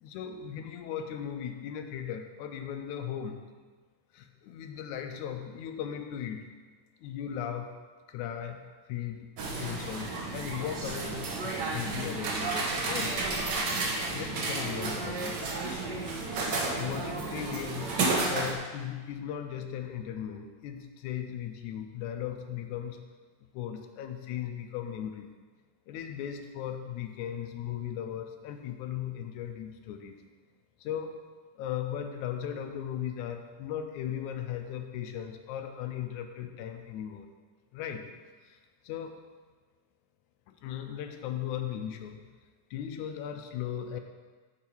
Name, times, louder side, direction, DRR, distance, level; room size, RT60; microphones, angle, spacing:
voice 1, 0.0-3.4 4.1-6.4 7.0-7.7 8.1-8.6 8.9-9.3 9.6-12.5 12.9-13.2 14.1-15.8 16.8-17.9 18.3-23.0 23.5-25.3 25.9-30.2 30.8-31.2 31.6-37.3 37.7-38.1 38.5-38.6 38.8-39.1 40.5-42.2 42.7-44.0, left 9 dB, 80° left, 6 dB, 2.0 m, -37 dB
sound 1, 9.4-18.5, right 3 dB, 90° right, 0.9 m, -32 dB
8.7 x 8.4 x 4.5 m, 1.4 s
omnidirectional pair, 3.6 m